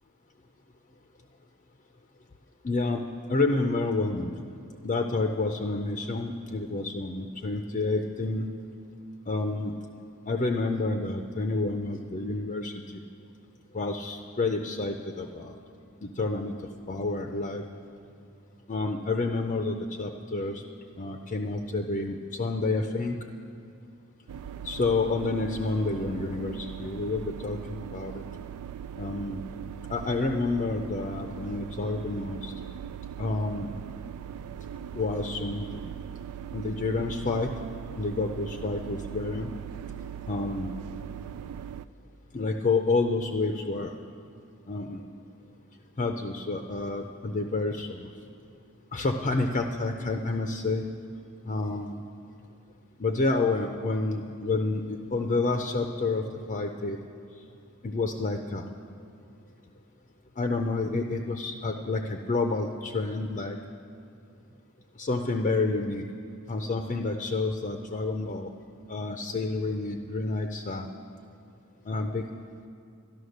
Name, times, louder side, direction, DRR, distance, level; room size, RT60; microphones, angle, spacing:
voice 1, 2.6-3.0 3.3-4.3 4.8-8.5 9.3-9.7 10.3-12.7 13.7-15.5 16.0-16.5 16.9-17.6 18.7-20.6 21.0-23.1 24.6-28.2 29.0-29.4 29.9-32.5 33.2-33.7 34.9-35.9 36.5-37.5 38.0-39.5 40.3-40.7 42.3-43.9 44.7-45.0 46.0-48.1 48.9-50.8 51.5-52.0 53.0-57.0 57.8-58.7 60.4-63.6 65.0-66.0 66.5-68.5 68.9-70.9 71.9-72.2, left 3 dB, 35° left, 4 dB, 0.5 m, -29 dB
sound 1, 24.3-41.9, right 9 dB, 90° right, 0.3 m, -40 dB
12.0 x 11.5 x 6.5 m, 2.4 s
head